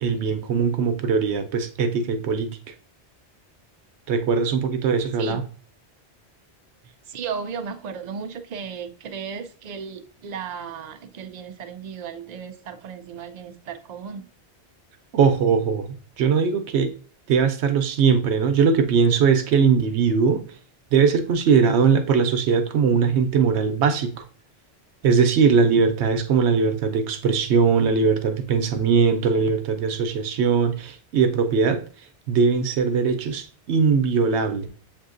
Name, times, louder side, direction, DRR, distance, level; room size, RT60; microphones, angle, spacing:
voice 1, 0.0-2.6 4.1-5.4 15.1-15.9 16.2-16.9 17.3-20.4 20.9-24.2 25.0-31.8 32.3-34.7, right 5 dB, 80° right, 0.9 m, -20 dB
voice 2, 7.1-14.3, right 6 dB, 55° right, 0.5 m, -35 dB
7.3 x 2.7 x 2.4 m
omnidirectional pair, 1.1 m